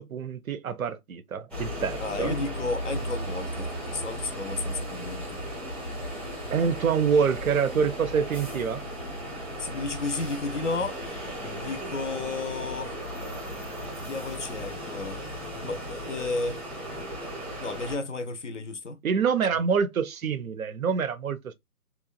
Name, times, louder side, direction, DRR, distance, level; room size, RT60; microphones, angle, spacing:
voice 1, 0.0-2.4 6.5-8.8 19.0-21.5, right 6 dB, 65° right, 0.5 m, -26 dB
sound 1, 1.5-18.0, equal, ahead, 0.5 m, -36 dB
voice 2, 2.0-5.4 9.6-11.0 11.5-13.0 14.0-15.2 15.6-16.6 17.0-17.1 17.6-19.0, left 3 dB, 55° left, 0.5 m, -33 dB
2.8 x 2.1 x 2.2 m
figure-of-eight pair, 160°, 45 cm